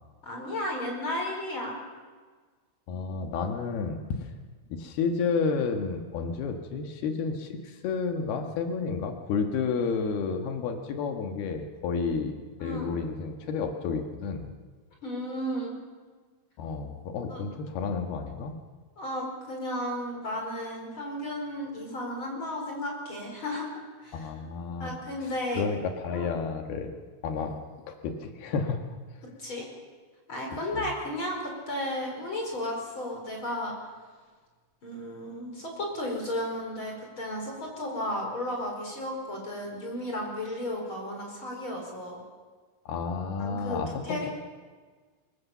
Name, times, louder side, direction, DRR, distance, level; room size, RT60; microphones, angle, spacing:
voice 1, 0.2-1.8 12.6-12.9 15.0-15.8 17.3-17.4 19.0-23.7 24.0-24.3 24.8-25.6 26.1-26.3 29.4-29.7 30.3-33.7 34.8-42.2 43.4-44.3, left 1 dB, 30° left, 0 dB, 5.3 m, -34 dB
voice 2, 2.9-4.3 4.7-12.4 12.6-14.5 16.6-18.5 24.1-24.9 25.2-26.9 27.2-27.6 27.9-28.8 30.7-30.9 42.9-44.3, left 5 dB, 85° left, 5 dB, 3.5 m, -31 dB
24.5 x 22.0 x 7.2 m, 1.5 s
omnidirectional pair, 4.4 m